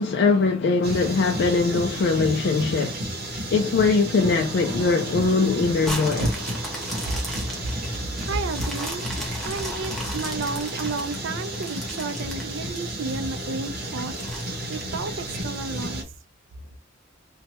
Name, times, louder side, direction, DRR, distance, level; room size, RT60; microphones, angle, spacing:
voice 1, 0.0-3.0 3.3-6.3, left 4 dB, 60° left, 0.3 m, -21 dB
sound 1, 0.8-16.0, right 1 dB, 55° right, 0.8 m, -32 dB
sound 2, 4.2-10.7, right 1 dB, 25° left, 1.2 m, -44 dB
sound 3, 5.8-13.1 13.6-13.7 14.2-15.5 16.0-16.1, equal, ahead, 0.8 m, -36 dB
voice 2, 8.2-9.1 9.4-14.2 14.7-16.0, right 3 dB, 80° right, 0.4 m, -31 dB
3.0 x 2.1 x 2.9 m
head